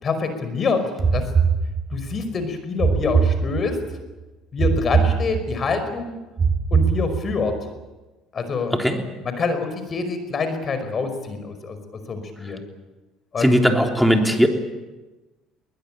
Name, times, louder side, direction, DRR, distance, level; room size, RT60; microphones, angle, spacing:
voice 1, 0.0-1.3 1.9-3.8 4.5-6.2 6.7-7.6 8.3-8.7 9.4-11.8 12.1-12.6 13.3-13.5, left 4 dB, 35° left, 9 dB, 5.1 m, -26 dB
sound 1, 1.0-2.2 2.8-4.0 4.6-5.7 6.4-7.5, right 5 dB, 30° right, 3.2 m, -21 dB
voice 2, 8.7-9.0 12.4-12.5 13.4-14.5, equal, ahead, 3 dB, 3.4 m, -18 dB
21.0 x 20.5 x 9.1 m, 1.1 s
supercardioid pair, 105°, 0 cm